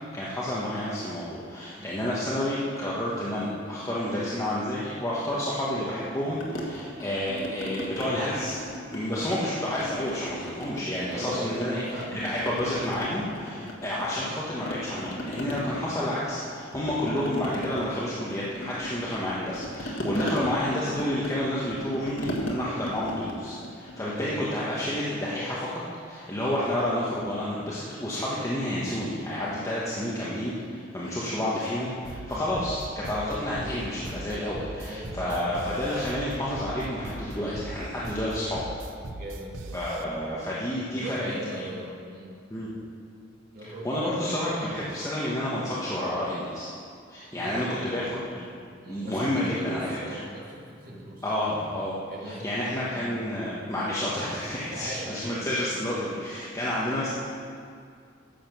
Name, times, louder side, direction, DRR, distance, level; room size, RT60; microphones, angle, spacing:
voice 1, 0.1-8.6 8.9-11.8 12.1-25.8 26.1-38.6 39.7-41.3 42.5-42.7 43.8-46.7 47.1-48.1 48.9-50.2 51.2-51.9 52.3-57.1, left 1 dB, 15° left, -7 dB, 1.2 m, -30 dB
sound 1, 6.4-8.1 8.4-9.5 9.8-11.7 12.0-14.4 14.7-24.5, equal, 85° left, 1.6 m, -36 dB
voice 2, 11.1-12.2 13.4-13.7 23.9-24.2 32.2-32.5 34.8-35.6 39.1-40.2 40.9-42.3 43.5-44.2 45.4-45.6 47.3-48.4 48.8-51.3 52.1-52.6 52.9-53.1 54.6-55.5, right 1 dB, 50° right, -4 dB, 2.0 m, -40 dB
sound 2, 32.0-40.0, right 2 dB, 85° right, 0.7 m, -39 dB
10.5 x 7.5 x 6.1 m, 2.4 s
head